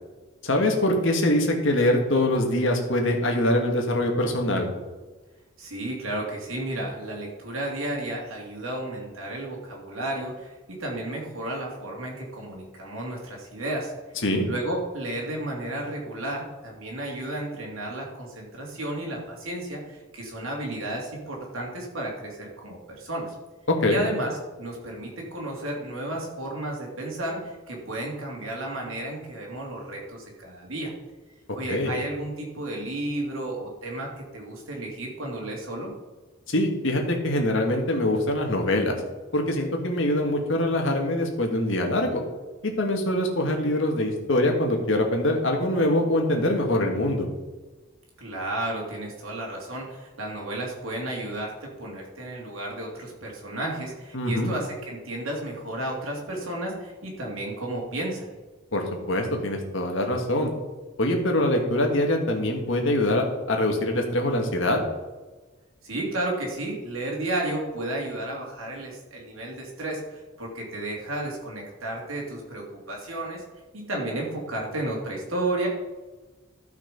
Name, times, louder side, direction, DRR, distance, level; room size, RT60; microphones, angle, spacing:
voice 1, 0.4-4.7 14.2-14.5 23.8-24.0 31.7-31.9 36.5-39.0 39.3-42.2 42.6-47.3 54.1-54.5 58.7-60.5 61.0-64.8, left 1 dB, 65° left, 2 dB, 1.9 m, -24 dB
voice 2, 5.6-13.9 14.4-23.3 23.9-30.9 31.5-35.9 48.2-58.3 65.8-73.4 73.7-75.7, right 1 dB, 85° right, -2 dB, 2.8 m, -32 dB
12.5 x 5.9 x 5.3 m, 1.2 s
head